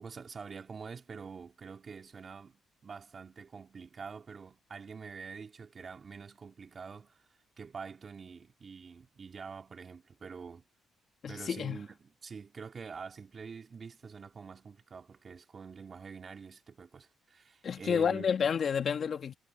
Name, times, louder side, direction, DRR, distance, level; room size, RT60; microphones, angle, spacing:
voice 1, 0.0-7.2 7.6-10.6 11.3-18.3, right 5 dB, 40° right, 3.9 m, -46 dB
voice 2, 11.2-11.8 17.6-19.3, left 7 dB, 50° left, 2.3 m, -30 dB
cardioid pair, 90°, 0 cm